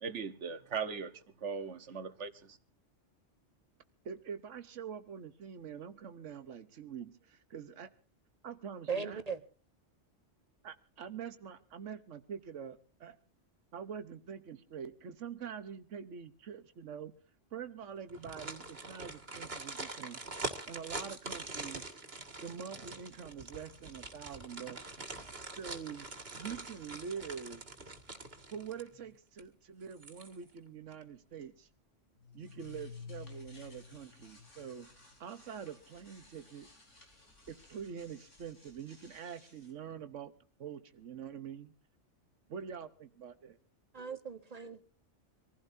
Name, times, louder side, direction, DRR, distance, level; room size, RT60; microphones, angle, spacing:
voice 1, 0.0-2.6, right 6 dB, 70° right, 1.5 m, -39 dB
voice 2, 4.0-7.9 8.4-9.2 10.6-13.2 13.7-17.1 17.5-20.2 20.7-21.8 22.4-24.8 25.6-26.1 26.3-27.6 28.5-31.7 32.3-34.9 35.2-36.7 37.5-40.3 40.6-41.7 42.5-43.6, right 7 dB, 90° right, 1.4 m, -45 dB
voice 3, 8.9-9.4 43.9-44.8, right 6 dB, 35° right, 1.2 m, -38 dB
sound 1, 18.1-29.0 29.4-29.5 29.9-30.6 30.9-31.0, right 2 dB, 55° right, 2.2 m, -44 dB
sound 2, 32.2-39.7, left 4 dB, 80° left, 4.4 m, -54 dB
25.5 x 16.0 x 2.7 m
omnidirectional pair, 1.2 m